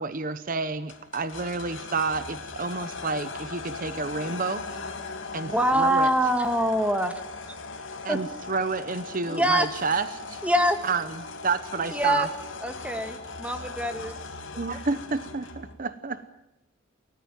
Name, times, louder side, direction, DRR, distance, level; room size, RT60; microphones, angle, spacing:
voice 1, 0.0-4.6 5.3-6.1 8.0-10.4 10.8-12.3 14.6-16.2, right 4 dB, 40° right, 13 dB, 0.9 m, -30 dB
sound 1, 0.9-15.7, left 4 dB, 65° left, 2.9 m, -39 dB
voice 2, 4.3-5.6, left 2 dB, 50° left, 3 dB, 3.3 m, -49 dB
voice 3, 5.5-7.3 8.1-8.2 9.3-9.7 10.4-10.8 11.9-12.3 12.6-14.1, equal, 5° right, 7 dB, 1.8 m, -24 dB
28.5 x 14.0 x 9.0 m, 0.92 s
head